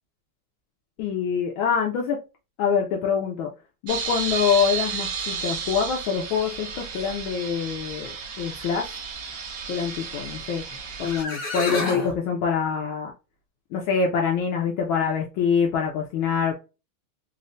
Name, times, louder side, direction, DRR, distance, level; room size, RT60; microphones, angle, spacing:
voice 1, 1.0-2.2 2.6-3.5 3.8-9.0 9.7-10.6 11.0-13.1 13.7-16.5, left 6 dB, 75° left, 1.4 m, -25 dB
sound 1, 3.9-11.2, right 6 dB, 75° right, 0.8 m, -33 dB
sound 2, 10.7-10.8 11.0-12.2, left 3 dB, 45° left, 1.3 m, -29 dB
4.1 x 2.1 x 2.5 m
omnidirectional pair, 2.3 m